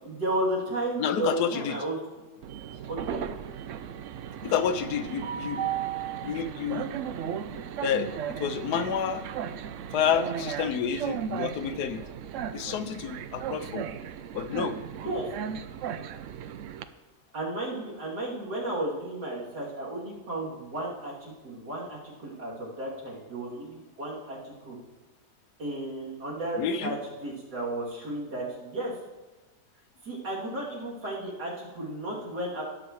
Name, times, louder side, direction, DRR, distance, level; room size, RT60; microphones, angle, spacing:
voice 1, 0.0-2.0 2.9-3.2 15.0-15.3 17.3-24.8 25.6-27.0 27.2-28.9 30.0-32.6, right 1 dB, 90° right, -6 dB, 3.5 m, -33 dB
voice 2, 1.0-1.8 4.4-5.7 6.2-6.9 7.8-9.2 9.9-12.1 12.5-13.9 14.3-14.8 26.6-26.9, left 7 dB, 85° left, 11 dB, 1.2 m, -29 dB
Train, 2.4-16.8, right 9 dB, 70° right, 0.7 m, -36 dB
20.0 x 7.0 x 3.1 m, 1.2 s
omnidirectional pair, 1.7 m